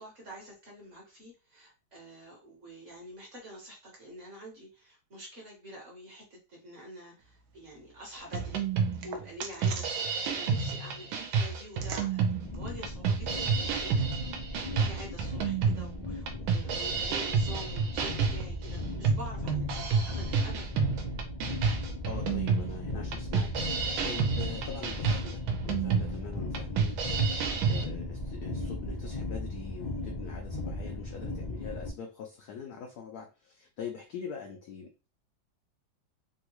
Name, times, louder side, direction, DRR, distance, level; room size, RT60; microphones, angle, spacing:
voice 1, 0.0-8.7 9.0-14.1 14.6-20.7, equal, 45° right, -2 dB, 1.2 m, -47 dB
sound 1, 7.2-14.0, right 5 dB, 65° right, 1.0 m, -48 dB
sound 2, 8.3-27.8, right 5 dB, 80° right, 1.4 m, -30 dB
sound 3, 12.4-31.9, left 2 dB, 60° left, 0.4 m, -37 dB
voice 2, 22.1-34.9, left 6 dB, 75° left, 3 dB, 0.9 m, -43 dB
3.5 x 2.3 x 2.9 m, 0.31 s
omnidirectional pair, 2.1 m